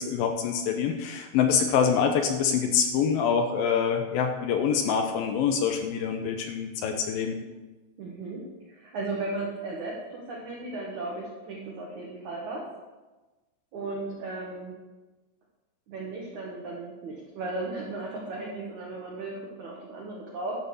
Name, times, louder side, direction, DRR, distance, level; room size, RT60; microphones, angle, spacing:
voice 1, 0.0-7.4, left 7 dB, 80° left, 5 dB, 2.1 m, -25 dB
voice 2, 8.0-12.6 13.7-14.7 15.9-20.6, right 2 dB, 55° right, -3 dB, 2.3 m, -36 dB
12.0 x 6.6 x 7.1 m, 1.2 s
omnidirectional pair, 5.2 m